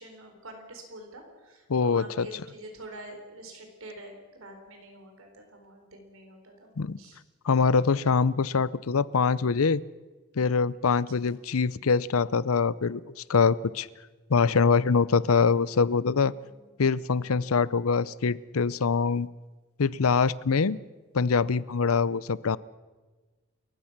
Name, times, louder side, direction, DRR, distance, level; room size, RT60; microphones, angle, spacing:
voice 1, 0.0-6.7 7.0-7.2 10.9-11.3 16.3-16.7, right 1 dB, 70° right, 4 dB, 4.1 m, -46 dB
voice 2, 1.7-2.3 6.8-7.0 7.4-9.8 10.4-13.0 13.3-13.9 14.3-16.3 16.8-19.3 19.8-20.8 21.1-22.6, left 5 dB, 85° left, 20 dB, 0.6 m, -24 dB
29.0 x 15.0 x 6.0 m, 1.3 s
head